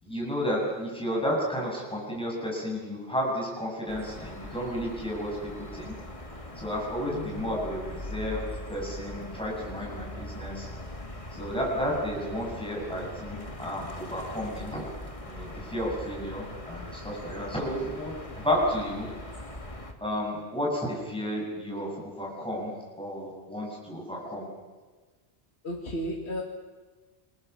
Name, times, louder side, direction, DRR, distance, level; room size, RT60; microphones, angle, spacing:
voice 1, 0.0-5.9 6.6-7.8 8.1-10.7 11.3-14.8 15.2-18.1 18.4-19.1 20.0-24.5, equal, 5° left, -3 dB, 8.0 m, -32 dB
sound 1, 3.9-19.9, left 1 dB, 30° left, 2.5 m, -41 dB
voice 2, 7.1-7.7 18.3-18.4 25.6-26.4, left 1 dB, 75° left, -1 dB, 2.8 m, -34 dB
28.0 x 23.0 x 7.1 m, 1.4 s
omnidirectional pair, 1.1 m